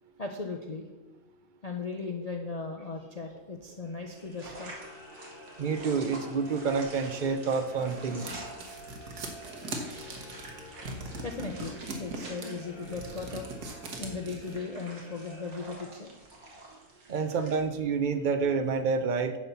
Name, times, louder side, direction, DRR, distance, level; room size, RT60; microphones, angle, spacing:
voice 1, 0.2-0.9 1.6-4.7 11.2-16.1 17.2-17.3, left 4 dB, 45° left, 2 dB, 0.5 m, -37 dB
sound 1, 3.8-16.1, left 1 dB, 75° left, 3.6 m, -50 dB
sound 2, 4.1-17.6, right 2 dB, 70° right, 2.3 m, -48 dB
voice 2, 5.6-8.4 17.1-19.4, right 5 dB, 50° right, 8 dB, 0.5 m, -28 dB
sound 3, 7.3-14.6, right 2 dB, 90° right, 1.8 m, -40 dB
10.5 x 4.2 x 6.9 m, 1.1 s
omnidirectional pair, 1.6 m